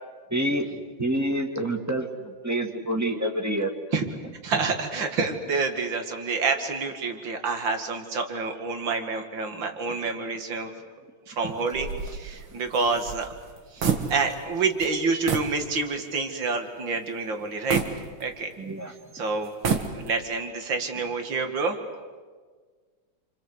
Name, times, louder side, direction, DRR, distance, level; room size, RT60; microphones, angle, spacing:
voice 1, 0.3-0.7 1.0-3.7 18.6-18.9, right 1 dB, 10° right, 4 dB, 2.2 m, -27 dB
voice 2, 4.4-10.7 11.3-13.3 13.7-13.8 14.1-17.8 18.2-18.5 18.9-19.5 19.9-21.8, right 4 dB, 70° right, 6 dB, 2.9 m, -28 dB
sound 1, 11.7-14.5 14.8-14.9 15.3-15.6 16.1-16.2 17.7-18.7 19.4-20.3, right 5 dB, 85° right, 2.7 m, -29 dB
28.5 x 25.5 x 8.2 m, 1.5 s
omnidirectional pair, 2.2 m